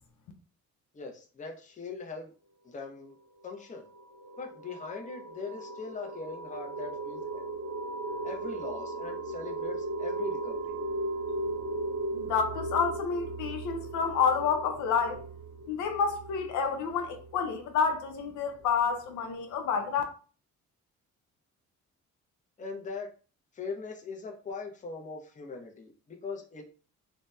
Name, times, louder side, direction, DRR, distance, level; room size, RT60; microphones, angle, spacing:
voice 1, 0.9-2.3 2.6-3.2 3.4-3.9 4.4-7.4 8.2-10.8 22.6-23.1 23.5-26.6, left 4 dB, 25° left, 0.6 m, -40 dB
sound 1, 3.5-17.9, right 2 dB, 35° right, 0.7 m, -37 dB
voice 2, 12.1-15.2 15.7-20.0, left 6 dB, 75° left, 0.5 m, -29 dB
2.7 x 2.1 x 2.2 m
cardioid pair, 90°, 30 cm